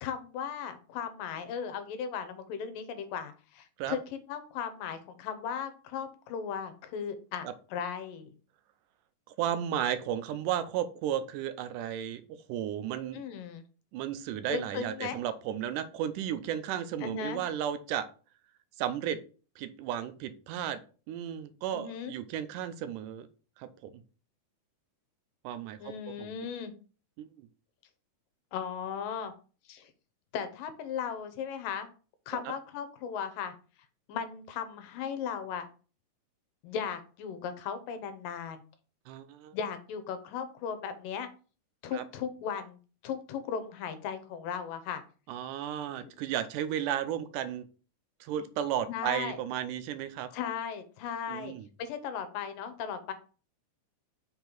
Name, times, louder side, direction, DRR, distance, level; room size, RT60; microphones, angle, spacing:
voice 1, 0.0-8.3 13.1-13.6 14.5-15.2 17.0-17.4 21.7-22.1 25.8-26.7 28.5-29.3 29.7-29.9 30.3-31.9 32.3-33.5 34.1-35.7 36.6-38.6 39.5-41.3 41.8-45.0 46.0-46.1 48.9-49.4 50.3-53.1, left 7 dB, 85° left, 10 dB, 2.5 m, -37 dB
voice 2, 9.4-12.2 12.5-13.2 13.9-18.1 18.8-19.2 19.6-20.8 21.1-23.3 23.6-24.0 25.4-25.9 26.2-26.3 27.2-27.5 32.3-32.4 39.1-39.5 41.9-42.0 45.3-47.7 48.2-50.3 51.3-51.7, right 10 dB, 80° right, 11 dB, 2.0 m, -34 dB
5.6 x 4.4 x 3.9 m, 0.37 s
omnidirectional pair, 3.8 m